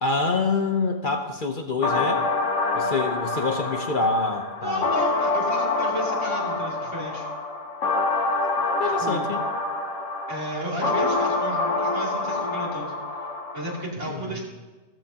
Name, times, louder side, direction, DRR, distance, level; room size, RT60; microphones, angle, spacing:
voice 1, 0.0-2.2 2.7-4.8 8.8-9.4 14.1-14.4, left 3 dB, 45° left, 4 dB, 0.9 m, -26 dB
sound 1, 1.8-13.8, left 3 dB, 75° left, 1.4 m, -26 dB
voice 2, 4.6-7.3 9.0-9.3 10.3-12.9 13.5-14.4, right 1 dB, 70° right, -4 dB, 3.3 m, -33 dB
15.5 x 14.0 x 2.9 m, 1.3 s
omnidirectional pair, 1.3 m